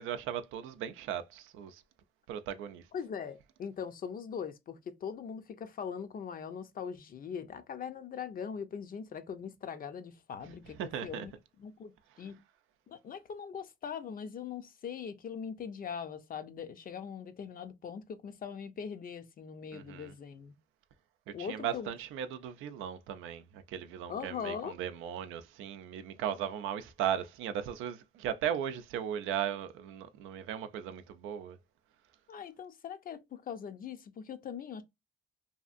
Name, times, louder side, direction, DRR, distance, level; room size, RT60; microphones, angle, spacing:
voice 1, 0.0-1.8 2.3-2.9 10.4-10.5 10.8-11.3 12.1-12.2 19.7-20.1 21.3-31.6, right 9 dB, 90° right, 0.4 m, -37 dB
voice 2, 2.9-11.3 11.6-12.4 12.9-20.5 21.3-21.9 24.1-24.8 32.3-34.8, left 7 dB, 45° left, 0.5 m, -41 dB
2.8 x 2.5 x 2.4 m
cardioid pair, 90°, 20 cm